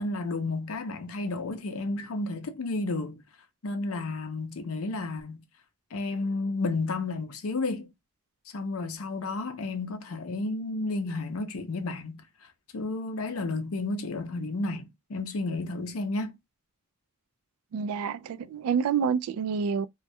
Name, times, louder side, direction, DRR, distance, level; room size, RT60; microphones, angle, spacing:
voice 1, 0.0-3.2 3.6-5.4 5.9-7.9 8.5-16.4, left 2 dB, 75° left, 0.6 m, -32 dB
voice 2, 17.7-19.9, right 6 dB, 85° right, 0.3 m, -28 dB
2.2 x 2.1 x 2.6 m
head